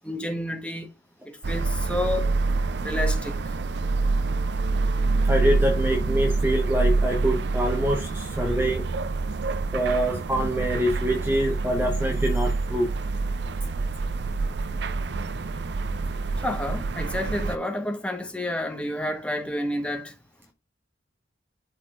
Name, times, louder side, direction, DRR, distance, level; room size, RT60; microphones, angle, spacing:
voice 1, 0.0-0.9 1.2-2.3 2.8-3.4 16.4-20.1, left 1 dB, 5° left, 1.2 m, -30 dB
sound 1, 1.4-17.6, right 3 dB, 60° right, 0.5 m, -26 dB
voice 2, 5.2-8.9 9.7-12.9, equal, 10° right, 0.8 m, -25 dB
12.0 x 4.1 x 2.5 m
head